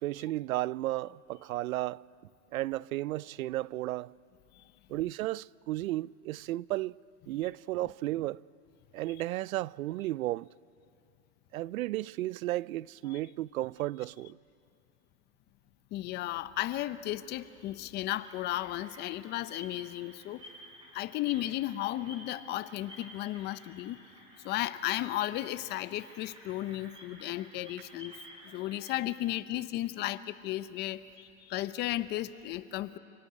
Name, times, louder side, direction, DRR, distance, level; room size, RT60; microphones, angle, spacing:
voice 1, 0.0-2.0 2.5-4.1 4.9-7.0 7.3-8.4 8.9-10.5 11.5-14.4, right 16 dB, 85° right, 0.5 m, -34 dB
voice 2, 15.9-20.4 20.9-24.0 24.4-28.1 28.4-33.0, left 15 dB, 25° left, 0.6 m, -34 dB
sound 1, 18.2-28.9, equal, 15° right, 5.4 m, -53 dB
28.5 x 17.5 x 9.6 m
supercardioid pair, 140°, 41 cm